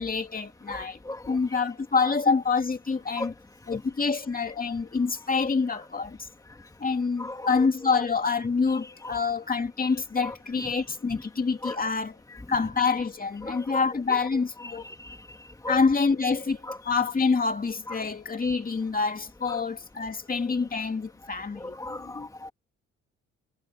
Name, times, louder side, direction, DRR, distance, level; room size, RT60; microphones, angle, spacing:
voice 1, 0.0-1.0 1.3-3.3 3.7-6.3 6.8-12.2 12.5-14.8 15.7-16.6 16.9-22.3, left 4 dB, 30° left, 2.3 m, -26 dB
voice 2, 0.7-1.6 3.2-3.3 3.7-3.8 5.7-5.8 7.2-8.0 9.0-9.2 10.2-10.4 11.1-11.2 11.6-11.8 12.3-12.4 13.4-13.9 14.6-15.4 15.6-15.8 16.6-16.9 17.9-18.1 19.5-19.6 21.6-22.5, left 2 dB, 10° left, 2.1 m, -38 dB
cardioid pair, 90°, 30 cm